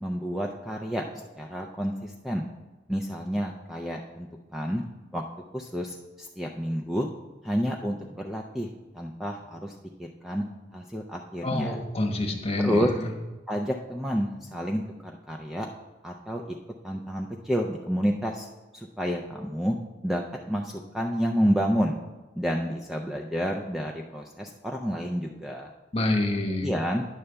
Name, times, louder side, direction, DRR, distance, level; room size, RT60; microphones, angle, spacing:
voice 1, 0.0-1.0 1.4-2.5 2.9-4.8 5.1-5.2 5.5-7.1 7.4-8.7 8.9-9.7 10.0-10.4 10.7-11.8 12.6-12.9 13.5-15.7 16.0-16.6 16.8-18.5 18.7-19.8 20.0-22.0 22.3-25.7 26.6-27.1, equal, ahead, 0 dB, 0.3 m, -29 dB
voice 2, 11.4-13.1 25.9-26.7, left 1 dB, 35° left, 1 dB, 1.1 m, -27 dB
9.7 x 3.3 x 6.8 m, 1.2 s
head